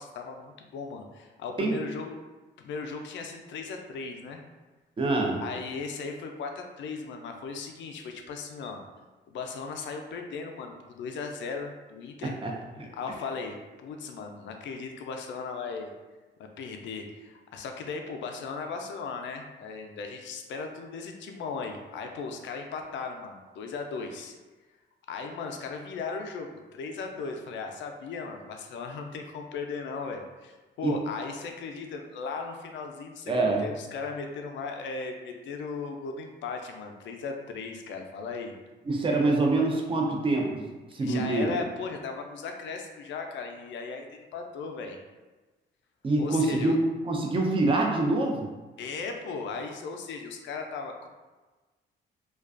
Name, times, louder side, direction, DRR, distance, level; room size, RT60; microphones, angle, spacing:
voice 1, 0.0-2.2 2.6-4.4 5.4-8.8 9.3-12.4 12.9-15.9 16.6-24.4 25.1-38.6 41.0-45.0 46.2-46.8 48.8-51.1, left 4 dB, 70° left, 4 dB, 0.4 m, -37 dB
voice 2, 5.0-5.4 12.2-12.9 30.8-30.9 33.3-33.7 38.9-41.6 46.0-48.5, right 2 dB, 25° right, 0 dB, 0.5 m, -26 dB
2.4 x 2.2 x 2.4 m, 1.2 s
cardioid pair, 90°, 20 cm